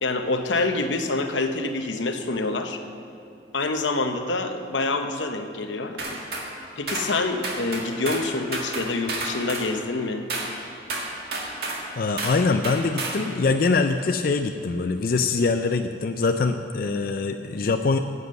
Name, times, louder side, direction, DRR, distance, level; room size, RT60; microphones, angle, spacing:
voice 1, 0.0-2.8 3.5-6.2 6.8-10.3, left 3 dB, 90° left, 6 dB, 0.9 m, -26 dB
sound 1, 6.0-6.5 6.9-7.1 7.4-8.3 8.5-9.7 10.3-10.5 10.9-11.8 12.2-12.4 12.6-13.2, right 3 dB, 60° right, 1.9 m, -30 dB
voice 2, 12.0-18.0, left 4 dB, 50° left, 7 dB, 0.4 m, -23 dB
10.5 x 8.2 x 7.6 m, 2.7 s
head